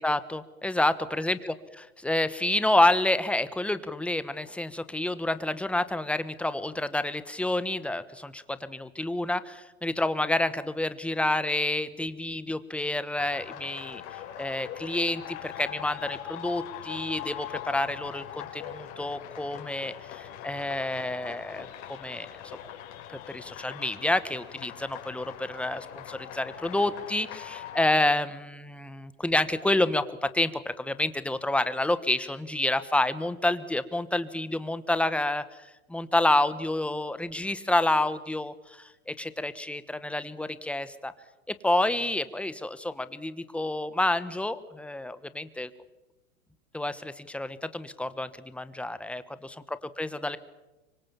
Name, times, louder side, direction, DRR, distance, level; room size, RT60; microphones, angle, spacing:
voice 1, 0.0-1.5 2.0-14.0 14.4-21.7 22.0-22.3 23.3-35.4 35.9-41.1 41.6-45.7 46.7-50.4, left 1 dB, 5° left, 13 dB, 1.2 m, -28 dB
sound 1, 13.2-27.9, left 11 dB, 50° left, 5.6 m, -42 dB
25.5 x 24.5 x 7.4 m, 1.1 s
hypercardioid pair, 115°, 42 cm